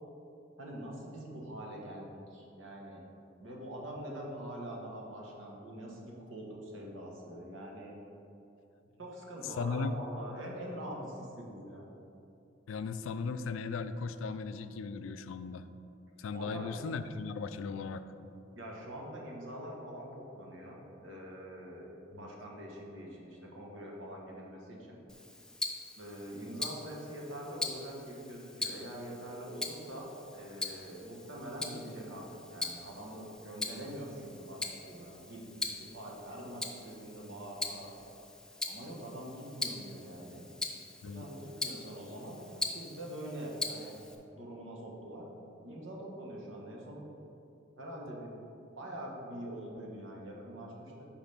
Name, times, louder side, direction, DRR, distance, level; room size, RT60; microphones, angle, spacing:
voice 1, 0.6-3.0 3.4-7.9 9.0-11.9 16.3-16.7 18.5-25.0 26.0-38.0 38.6-40.5 41.0-44.0 44.3-47.0 47.8-48.4 48.8-51.1, right 1 dB, 80° right, -1 dB, 1.2 m, -44 dB
voice 2, 9.4-10.0 12.7-15.6 16.2-18.0 22.1-22.3 41.0-41.3, left 4 dB, 80° left, 11 dB, 0.3 m, -37 dB
Tick-tock, 25.1-44.1, left 2 dB, 5° left, 0.4 m, -42 dB
5.2 x 5.0 x 5.6 m, 2.8 s
head